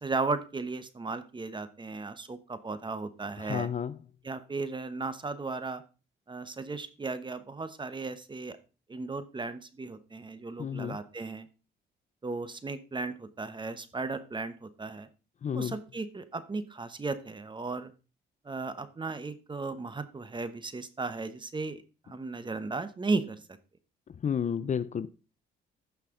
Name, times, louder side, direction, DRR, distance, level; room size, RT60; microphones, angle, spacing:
voice 1, 0.0-3.7 4.2-5.8 6.3-8.6 8.9-11.5 12.2-15.1 15.5-17.9 18.4-23.4, right 3 dB, 25° right, 1.0 m, -35 dB
voice 2, 3.4-4.0 10.6-11.0 15.4-15.7 24.2-25.1, left 7 dB, 35° left, 0.5 m, -31 dB
14.5 x 5.8 x 3.8 m
cardioid pair, 90°, 20 cm